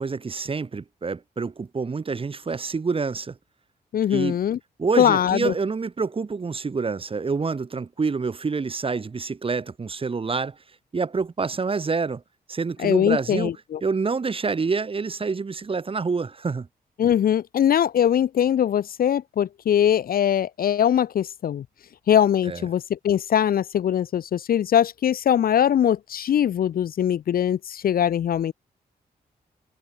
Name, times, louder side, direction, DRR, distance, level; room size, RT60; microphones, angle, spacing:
voice 1, 0.0-3.4 4.1-4.4 4.8-10.6 10.9-12.2 12.5-13.5 13.8-16.7 22.4-22.6, right 4 dB, 30° right, 0.7 m, -27 dB
voice 2, 3.9-4.6 5.0-5.5 12.8-13.8 17.0-21.6 22.1-28.5, left 9 dB, 60° left, 0.4 m, -21 dB
cardioid pair, 55°, 17 cm